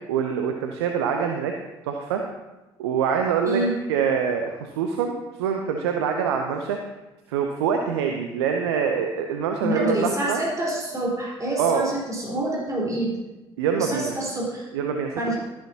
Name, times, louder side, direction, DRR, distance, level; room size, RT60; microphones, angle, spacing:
voice 1, 0.1-1.5 1.8-2.2 2.8-3.6 3.9-6.8 7.3-10.4 11.6-11.9 13.6-14.1 14.7-15.3, right 7 dB, 75° right, 4 dB, 0.7 m, -25 dB
voice 2, 9.6-13.1 13.8-14.7 15.2-15.3, right 1 dB, 25° right, -5 dB, 4.2 m, -27 dB
13.0 x 10.0 x 2.8 m, 1.0 s
figure-of-eight pair, 50°, 14 cm